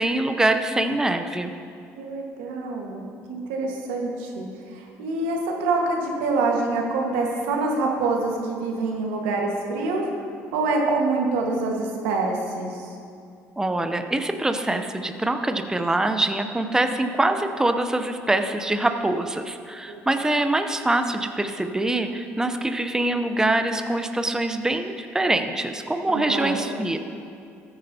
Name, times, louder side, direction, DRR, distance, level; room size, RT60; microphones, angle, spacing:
voice 1, 0.0-1.5 13.6-27.0, right 2 dB, 10° right, 7 dB, 0.7 m, -24 dB
voice 2, 2.0-3.0 3.3-4.5 4.7-10.2 10.5-12.9 19.9-20.0 26.1-26.6, right 3 dB, 90° right, 0 dB, 1.6 m, -26 dB
14.0 x 9.6 x 2.8 m, 2.4 s
supercardioid pair, 70°, 6 cm